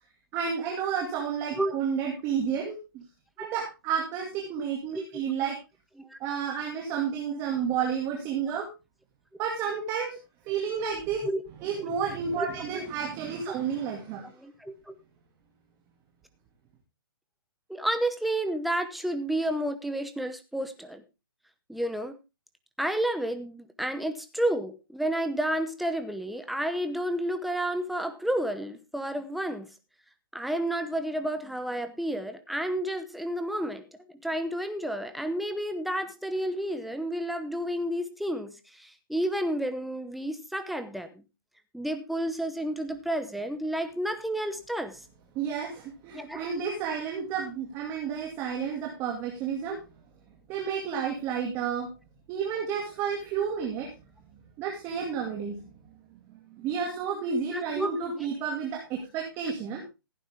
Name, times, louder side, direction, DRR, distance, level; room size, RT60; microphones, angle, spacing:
voice 1, 0.3-3.0 3.4-5.6 6.2-8.7 9.4-10.2 10.4-11.2 11.6-14.3 45.3-49.8 50.5-51.9 52.3-53.9 54.6-55.6 56.5-59.8, right 7 dB, 20° right, 0 dB, 2.3 m, -31 dB
voice 2, 14.4-14.9 17.7-21.0 21.7-22.2 22.8-29.7 30.3-33.8 34.2-41.2 41.7-45.0 46.1-46.4 57.5-58.3, right 1 dB, ahead, 8 dB, 0.9 m, -31 dB
15.5 x 9.2 x 3.5 m, 0.28 s
hypercardioid pair, 160°, 12 cm